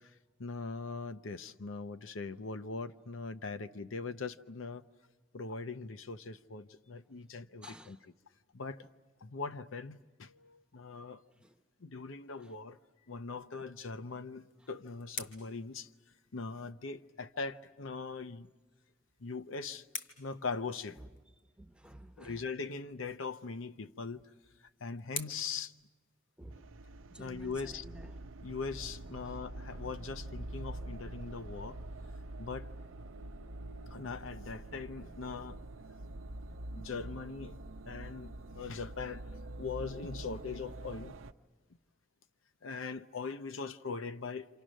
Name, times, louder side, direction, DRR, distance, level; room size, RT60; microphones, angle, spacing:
voice 1, 0.4-4.8 5.3-8.0 8.5-8.8 9.2-11.2 11.8-12.8 13.1-15.9 16.3-18.5 19.2-19.8 20.2-21.0 22.2-24.2 24.8-25.7 27.2-27.8 28.4-31.8 32.4-32.7 33.9-35.6 36.8-37.5 37.9-39.2 39.6-41.1 42.6-44.5, left 4 dB, 85° left, 0.7 m, -41 dB
voice 2, 7.6-8.0 11.4-11.5 12.4-12.5 14.6-14.7 21.0-21.1 21.6-22.5 26.4-26.8 27.1-28.2 29.2-29.4 33.1-33.2, right 1 dB, 5° right, 0.9 m, -53 dB
sound 1, 14.2-16.7 18.8-21.3 23.5-26.7, left 5 dB, 65° left, 2.3 m, -49 dB
sound 2, 26.5-41.3, right 1 dB, 90° right, 0.7 m, -46 dB
28.0 x 27.5 x 6.3 m
head